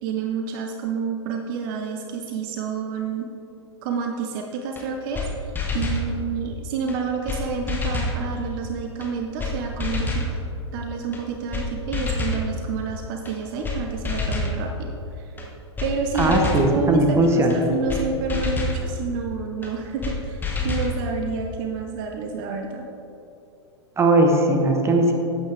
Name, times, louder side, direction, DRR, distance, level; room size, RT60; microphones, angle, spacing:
voice 1, 0.0-3.3 3.8-5.3 5.7-10.3 10.7-15.4 15.8-22.9, right 5 dB, 45° right, 3 dB, 0.8 m, -29 dB
sound 1, 4.8-4.9 5.1-5.3 5.6-6.0 6.9-7.0 7.3-7.4 7.7-8.2 9.0-9.1 9.4-9.5 9.8-10.3 11.1-11.2 11.5-11.7 11.9-12.4 13.3-13.4 13.6-13.8 14.0-14.5 15.4-15.5 15.8-15.9 16.2-16.7 17.5-17.6 17.9-18.0 18.3-18.8 19.6-19.7 20.0-20.2 20.4-20.9, left 3 dB, 15° left, 1.5 m, -27 dB
voice 2, 16.2-17.5 24.0-25.1, right 1 dB, 15° right, 3 dB, 1.2 m, -18 dB
12.0 x 8.7 x 3.4 m, 2.9 s
figure-of-eight pair, 100°, 15 cm